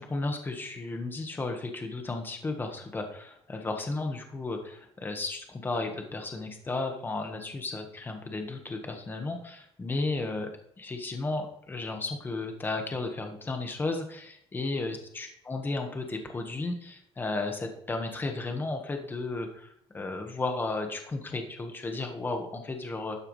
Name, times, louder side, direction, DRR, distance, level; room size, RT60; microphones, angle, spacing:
voice 1, 0.0-10.5 10.8-23.1, left 3 dB, 20° left, 4 dB, 1.4 m, -34 dB
12.5 x 9.6 x 3.2 m, 0.70 s
cardioid pair, 155°, 11 cm